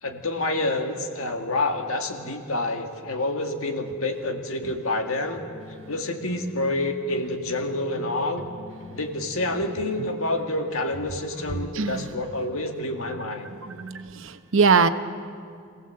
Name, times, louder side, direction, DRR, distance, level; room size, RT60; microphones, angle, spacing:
voice 1, 0.0-5.4 5.9-8.5 8.9-13.5, left 2 dB, 75° left, 4 dB, 2.0 m, -28 dB
sound 1, 5.4-13.5, left 1 dB, 45° left, 3.4 m, -44 dB
voice 2, 11.7-12.1 13.4-14.9, right 5 dB, 65° right, 10 dB, 0.9 m, -22 dB
26.5 x 17.0 x 7.7 m, 2.3 s
head